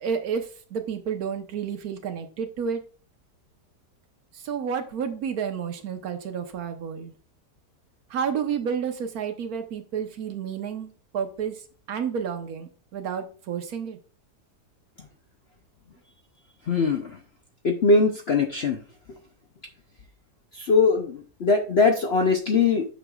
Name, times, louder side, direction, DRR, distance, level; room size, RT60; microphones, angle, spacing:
voice 1, 0.0-2.8 4.3-7.1 8.1-11.6 11.9-14.0, right 7 dB, 60° right, 6 dB, 1.4 m, -30 dB
voice 2, 16.7-17.1 17.6-18.8 20.5-22.9, left 4 dB, 55° left, 3 dB, 0.7 m, -21 dB
9.1 x 6.4 x 2.4 m, 0.39 s
omnidirectional pair, 1.8 m